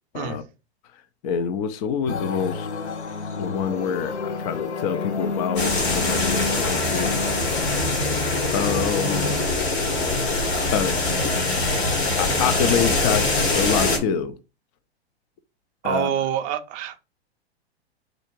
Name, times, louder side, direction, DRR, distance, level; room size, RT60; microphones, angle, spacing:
voice 1, 1.2-2.7 3.4-7.1 8.5-9.4 10.7-11.3 12.2-14.3 15.8-16.1, left 7 dB, 35° left, 0.5 m, -26 dB
sound 1, 2.1-9.5, left 4 dB, 90° left, 0.6 m, -30 dB
sound 2, 5.6-14.0, left 2 dB, 70° left, 1.9 m, -23 dB
voice 2, 15.8-17.0, right 10 dB, 25° right, 0.4 m, -26 dB
3.8 x 2.4 x 4.5 m
hypercardioid pair, 105°, 33 cm